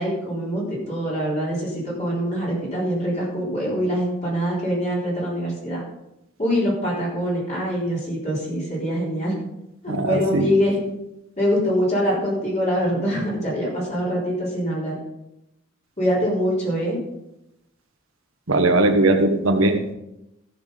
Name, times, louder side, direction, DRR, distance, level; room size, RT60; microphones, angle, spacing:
voice 1, 0.0-5.8 6.4-9.3 9.8-10.8 11.4-14.9 16.0-17.0, equal, 35° left, -5 dB, 4.1 m, -24 dB
voice 2, 9.9-10.5 18.5-19.9, right 2 dB, 90° right, 6 dB, 1.4 m, -19 dB
14.0 x 6.2 x 5.3 m, 0.88 s
head